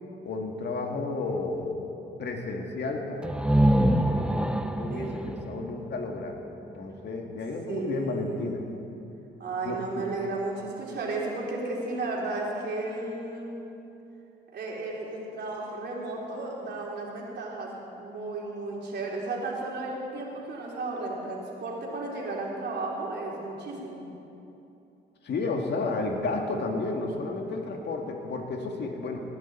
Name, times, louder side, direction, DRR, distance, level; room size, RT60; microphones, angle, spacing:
voice 1, 0.2-1.9 2.2-4.2 4.7-6.4 6.7-8.6 9.6-10.0 25.2-29.2, left 3 dB, 60° left, 2 dB, 1.9 m, -32 dB
sound 1, 3.2-6.9, right 1 dB, 5° right, 0.6 m, -26 dB
voice 2, 4.9-5.2 7.7-8.5 9.4-13.6 14.5-24.0, right 2 dB, 60° right, -3 dB, 3.4 m, -34 dB
19.0 x 11.0 x 4.4 m, 2.9 s
cardioid pair, 90°, 20 cm